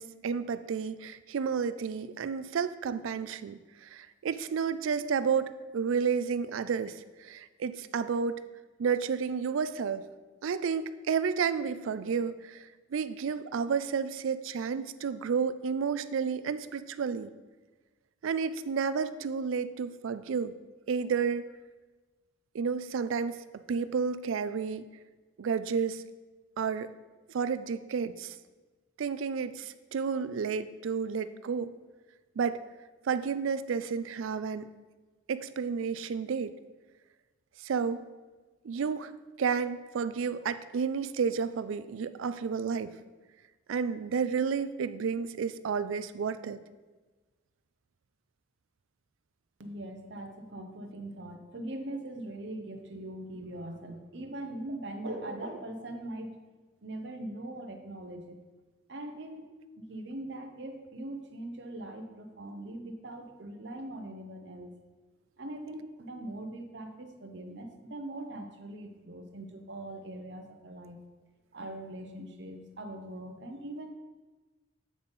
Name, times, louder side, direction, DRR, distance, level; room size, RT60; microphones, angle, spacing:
voice 1, 0.0-8.4 8.8-10.0 10.4-17.3 18.2-20.5 20.9-21.5 22.5-24.9 25.4-26.0 26.6-26.9 27.3-28.4 29.0-31.7 32.4-32.6 33.1-34.7 35.3-36.5 37.6-38.1 38.6-39.1 39.4-42.9 43.7-46.6, right 6 dB, 85° right, 13 dB, 0.4 m, -31 dB
voice 2, 49.6-56.4 56.8-58.4 58.9-64.7 65.4-71.0 71.5-73.9, right 1 dB, 60° right, 5 dB, 0.8 m, -41 dB
8.5 x 4.0 x 5.3 m, 1.3 s
head